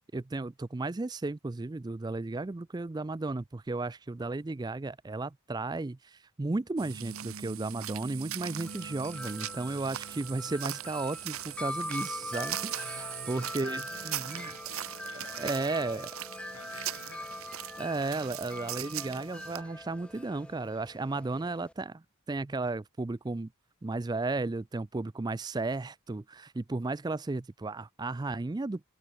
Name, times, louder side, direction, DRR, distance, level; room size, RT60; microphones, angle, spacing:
voice 1, 0.1-14.5 15.4-16.1 17.8-23.5 23.8-28.9, right 3 dB, 20° right, 0.3 m, -34 dB
sound 1, 6.8-19.6, right 11 dB, 70° right, 1.2 m, -40 dB
Wind chime, 8.4-21.7, left 1 dB, 5° left, 0.8 m, -43 dB
voice 2, 12.7-16.1 16.5-17.8 20.1-20.6, left 4 dB, 85° left, 7.0 m, -52 dB
head